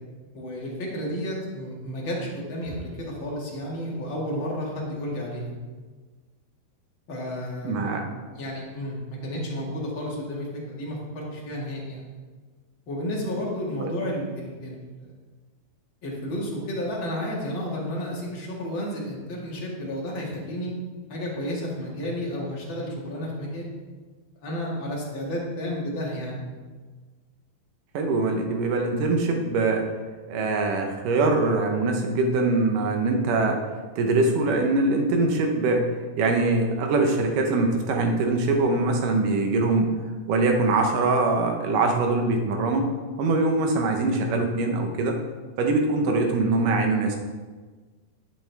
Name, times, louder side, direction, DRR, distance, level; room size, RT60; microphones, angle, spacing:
voice 1, 0.3-5.6 7.1-8.0 8.3-12.1 12.9-14.9 16.0-20.7 21.1-23.7 24.4-26.4, equal, 40° left, -4 dB, 2.1 m, -32 dB
voice 2, 7.6-8.0 13.8-13.9 27.9-29.9 30.3-33.6 34.0-35.9 36.2-39.9 40.3-42.9 43.2-45.2 45.6-47.2, right 3 dB, 70° right, 3 dB, 2.3 m, -23 dB
11.0 x 8.5 x 3.4 m, 1.4 s
omnidirectional pair, 4.4 m